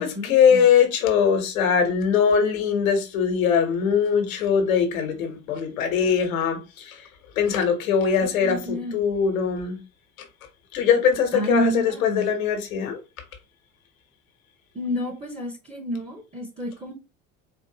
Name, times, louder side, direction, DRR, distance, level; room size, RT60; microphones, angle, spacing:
voice 1, 0.0-7.0 7.4-8.6 8.9-9.8 10.7-13.0, left 7 dB, 85° left, 1.1 m, -21 dB
voice 2, 8.2-9.0 11.3-12.3 14.7-16.9, equal, 15° right, 0.9 m, -29 dB
4.3 x 2.5 x 2.8 m
hypercardioid pair, 75°, 41 cm